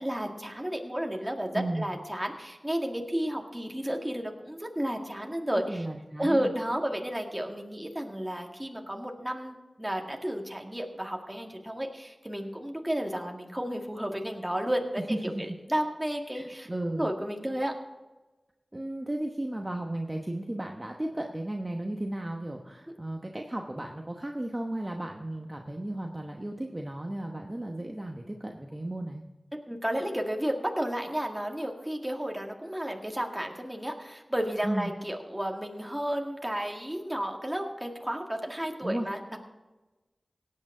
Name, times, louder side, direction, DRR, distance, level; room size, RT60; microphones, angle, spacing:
voice 1, 0.0-5.9 6.2-16.7 17.0-17.7 29.7-39.4, equal, 10° right, 2 dB, 2.0 m, -32 dB
voice 2, 1.5-2.0 5.5-6.5 15.1-15.4 16.3-17.1 18.7-29.2 34.6-34.9 38.8-39.1, right 1 dB, 25° right, 2 dB, 1.1 m, -34 dB
17.5 x 8.8 x 3.8 m, 1.1 s
wide cardioid pair, 50°, 0 cm